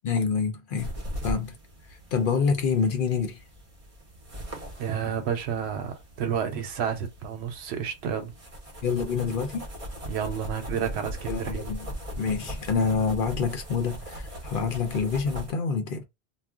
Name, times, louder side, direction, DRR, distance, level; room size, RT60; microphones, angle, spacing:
voice 1, 0.0-1.0 1.2-1.5 2.1-3.4 8.8-9.7 11.2-11.9 12.2-16.0, left 5 dB, 60° left, 0.7 m, -27 dB
sound 1, 0.8-15.5, equal, 35° right, 0.7 m, -39 dB
voice 2, 4.8-8.3 10.1-11.6, right 8 dB, 80° right, 0.9 m, -30 dB
2.4 x 2.1 x 3.5 m
omnidirectional pair, 1.1 m